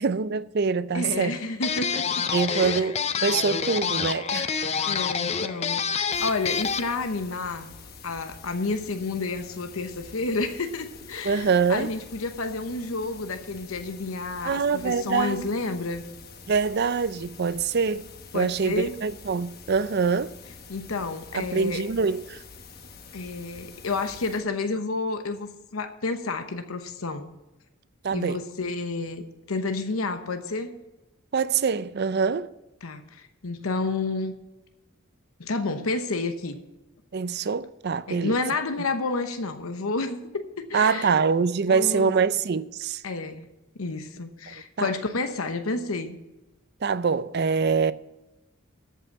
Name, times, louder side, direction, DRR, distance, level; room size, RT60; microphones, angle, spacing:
voice 1, 0.0-1.4 2.3-4.5 11.2-11.9 14.4-15.5 16.5-20.3 21.3-22.4 28.0-28.4 31.3-32.5 37.1-38.3 40.7-43.0 44.8-44.9 46.8-47.9, right 5 dB, 50° right, 0.5 m, -24 dB
voice 2, 0.9-2.0 2.5-2.9 4.8-7.7 8.0-16.0 18.3-18.9 20.7-21.8 23.1-27.3 28.1-30.7 32.8-34.3 35.4-36.6 38.1-41.1 41.7-42.1 43.0-43.5 43.8-46.2, left 3 dB, 85° left, 0.9 m, -30 dB
sound 1, 1.6-7.0, left 6 dB, 30° left, 0.5 m, -27 dB
sound 2, 6.1-24.4, left 4 dB, 45° left, 1.1 m, -46 dB
13.5 x 5.6 x 7.2 m
head